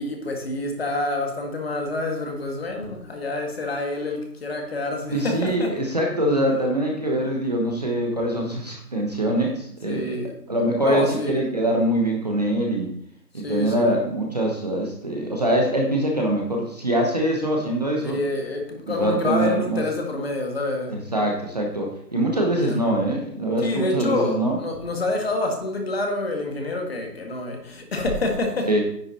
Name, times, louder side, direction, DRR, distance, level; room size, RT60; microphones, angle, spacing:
voice 1, 0.0-5.7 9.9-10.3 10.8-11.5 13.3-14.0 18.0-21.0 22.6-22.8 23.6-28.7, left 2 dB, 35° left, 3 dB, 1.8 m, -27 dB
voice 2, 5.1-10.1 10.5-12.9 13.3-18.2 18.9-19.8 20.9-24.6 28.7-28.8, right 1 dB, 25° right, 0 dB, 1.0 m, -23 dB
9.9 x 6.6 x 4.2 m, 0.68 s
figure-of-eight pair, 165°, 50 cm